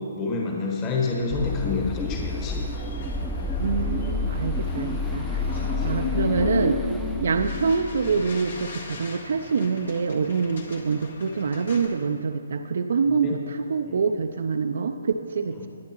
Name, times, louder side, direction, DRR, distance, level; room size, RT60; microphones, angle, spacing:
voice 1, 0.1-2.6 3.6-3.9 5.8-6.0 8.9-9.0 13.1-13.5 13.8-14.1 15.5-15.7, left 3 dB, 25° left, -1 dB, 1.5 m, -29 dB
sound 1, 0.6-11.9, left 3 dB, 60° left, 1.7 m, -36 dB
sound 2, 1.3-8.7, left 3 dB, ahead, 0.3 m, -30 dB
voice 2, 3.6-6.9 7.2-15.7, right 5 dB, 60° right, 6 dB, 0.5 m, -26 dB
20.5 x 9.4 x 3.0 m, 2.4 s
figure-of-eight pair, 140°, 0 cm